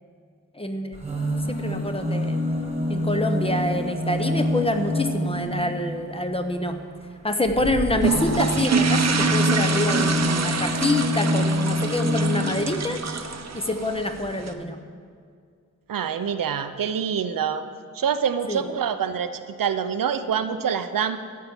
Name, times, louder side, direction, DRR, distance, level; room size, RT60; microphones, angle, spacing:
voice 1, 0.5-1.1 1.5-2.4 2.9-6.8 7.2-13.0 13.5-14.8 18.5-18.7, left 1 dB, 15° left, 6 dB, 0.8 m, -26 dB
sound 1, 0.9-5.8 7.4-12.9 13.9-14.0 14.2-14.3, left 1 dB, 20° right, 1.4 m, -26 dB
sound 2, 8.0-14.5, right 5 dB, 50° right, 0.8 m, -26 dB
voice 2, 15.9-17.6 17.9-21.2, right 7 dB, 80° right, 10 dB, 0.7 m, -26 dB
13.0 x 4.7 x 8.8 m, 2.1 s
wide cardioid pair, 110°, 33 cm